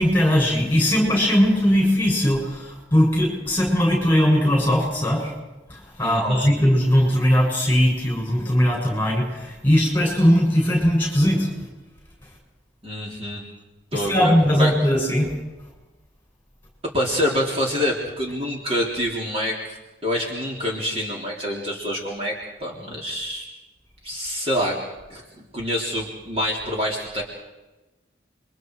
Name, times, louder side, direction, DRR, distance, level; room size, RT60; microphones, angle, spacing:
voice 1, 0.0-5.3 5.7-11.5 13.9-15.3, equal, 10° left, 0 dB, 7.1 m, -19 dB
voice 2, 6.0-6.5 12.8-13.4 13.9-14.7 16.9-23.5 24.0-24.8 25.1-27.2, equal, 30° right, -2 dB, 3.6 m, -26 dB
29.5 x 23.5 x 4.8 m, 1.1 s
head